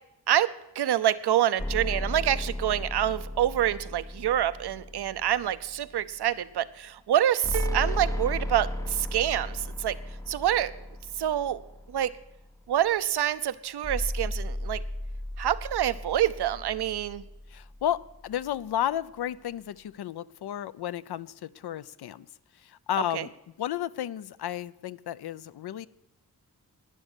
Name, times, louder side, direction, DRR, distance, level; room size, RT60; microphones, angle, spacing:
voice 1, 0.3-10.0 10.3-10.7 11.2-11.6 11.9-12.1 12.7-14.8 15.4-17.2 23.1-23.2, right 11 dB, 85° right, 15 dB, 0.7 m, -26 dB
sound 1, 1.6-6.0 7.4-12.3 13.8-18.2, left 1 dB, 10° left, 0.4 m, -35 dB
sound 2, 7.5-9.5, right 10 dB, 40° right, 0.6 m, -38 dB
voice 2, 17.5-22.3 22.6-23.3 23.6-25.9, left 11 dB, 75° left, 17 dB, 0.6 m, -32 dB
12.0 x 9.9 x 8.1 m, 0.91 s
wide cardioid pair, 90°, 39 cm